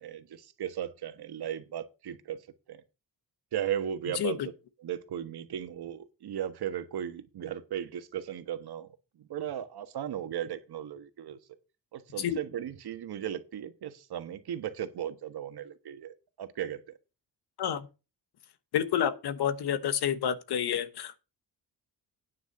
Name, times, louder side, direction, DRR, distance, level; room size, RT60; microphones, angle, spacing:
voice 1, 0.0-2.4 2.7-2.8 3.5-4.4 4.8-8.9 9.3-11.4 11.9-16.8, right 10 dB, 75° right, 1.4 m, -36 dB
voice 2, 4.1-4.5 12.2-12.4 17.6-17.9 18.7-21.2, left 9 dB, 80° left, 1.1 m, -29 dB
9.5 x 6.0 x 6.6 m
wide cardioid pair, 125°, 39 cm